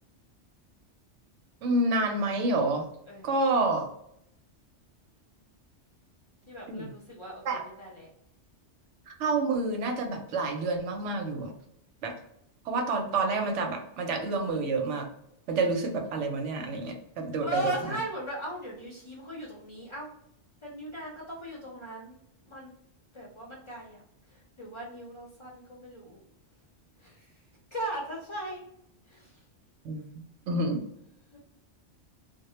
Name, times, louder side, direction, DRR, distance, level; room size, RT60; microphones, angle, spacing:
voice 1, 1.6-2.9 3.2-3.9 6.7-6.8 7.5-7.6 9.1-11.5 12.0-12.1 12.7-15.1 15.5-17.7 29.8-30.8, right 2 dB, 85° right, 4 dB, 0.9 m, -28 dB
voice 2, 6.5-8.1 17.4-20.1 20.6-22.2 22.4-22.7 23.1-24.0 24.3-26.2 27.0-27.4 27.7-28.7 29.1-29.4 31.3-31.4, right 1 dB, 40° left, -5 dB, 0.4 m, -38 dB
2.1 x 2.1 x 3.0 m, 0.77 s
omnidirectional pair, 1.2 m